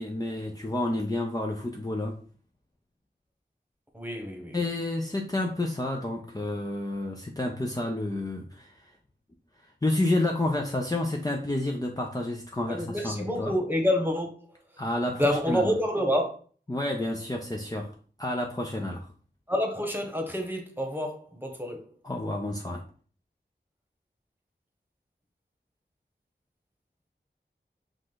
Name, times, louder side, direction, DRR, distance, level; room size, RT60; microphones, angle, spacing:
voice 1, 0.0-2.2 4.5-8.7 9.8-13.5 14.8-15.7 16.7-17.9 18.2-19.1 22.0-22.8, left 1 dB, 20° left, 0.6 m, -30 dB
voice 2, 3.9-4.6 12.7-14.3 15.2-16.4 19.5-21.9, equal, 10° right, 1.2 m, -28 dB
4.8 x 2.5 x 3.9 m
wide cardioid pair, 45°, 19 cm